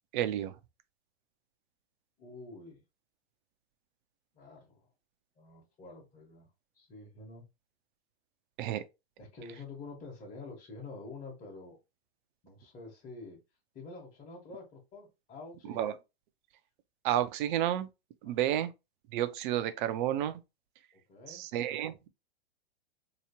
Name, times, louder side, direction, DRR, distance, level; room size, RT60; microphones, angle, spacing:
voice 1, 0.1-0.5 8.6-8.8 15.7-15.9 17.0-17.9 18.2-18.7 19.1-20.4 21.3-21.9, right 12 dB, 50° right, 0.6 m, -30 dB
voice 2, 2.2-2.8 4.3-4.9 5.4-6.5 6.7-7.4 9.2-11.8 12.4-13.4 13.7-16.0 18.2-18.6 20.9-21.5, left 3 dB, 25° left, 1.2 m, -48 dB
3.1 x 3.0 x 2.9 m
hypercardioid pair, 115°, 33 cm